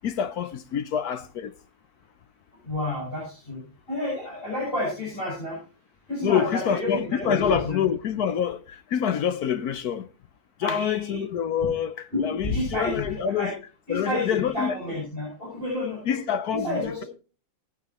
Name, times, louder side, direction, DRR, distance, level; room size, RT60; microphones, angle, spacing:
voice 1, 0.0-1.5 6.2-10.1 10.6-13.5 13.9-14.8 16.0-17.0, left 8 dB, 60° left, 1.2 m, -26 dB
voice 2, 2.6-3.6 3.9-5.6 6.1-7.8 10.6-11.2 12.1-13.5 13.9-16.2 16.5-17.1, left 2 dB, 25° left, 7.2 m, -30 dB
19.0 x 9.5 x 3.0 m
omnidirectional pair, 2.1 m